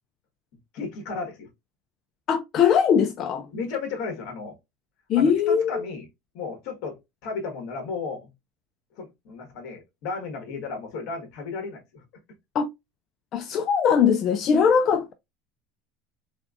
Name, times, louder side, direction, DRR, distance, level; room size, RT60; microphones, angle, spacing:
voice 1, 0.7-1.5 3.4-4.5 5.1-6.1 6.3-8.3 8.9-12.0, left 4 dB, 50° left, 1.5 m, -34 dB
voice 2, 2.3-3.5 5.1-5.8 12.5-12.7 13.3-15.1, left 7 dB, 30° left, 0.3 m, -21 dB
3.5 x 3.4 x 2.5 m
cardioid pair, 175°, 0 cm